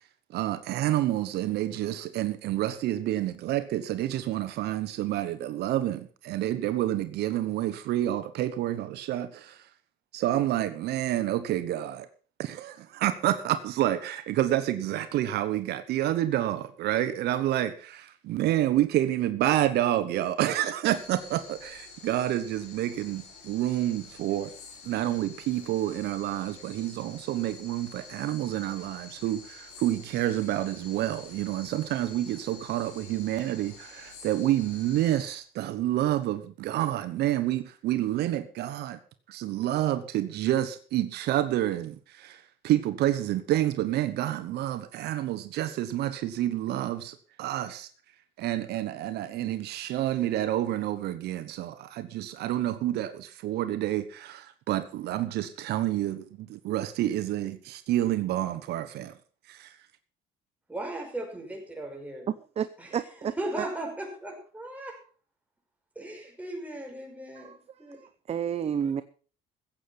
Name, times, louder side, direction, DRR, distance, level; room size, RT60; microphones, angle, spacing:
voice 1, 0.3-9.7 10.1-12.1 12.4-24.5 24.8-39.0 39.3-47.9 48.4-59.1 59.5-59.7, right 13 dB, 75° right, 1.1 m, -29 dB
sound 1, 20.8-35.4, left 4 dB, 85° left, 7.7 m, -48 dB
voice 2, 60.7-62.3 62.8-62.9 63.2-65.0 66.0-67.5 67.8-68.0, right 1 dB, 10° right, 5.5 m, -37 dB
voice 3, 62.6-63.7 67.4-67.6 68.0-69.0, right 8 dB, 40° right, 0.7 m, -31 dB
15.0 x 8.6 x 5.8 m
cardioid pair, 110°, 17 cm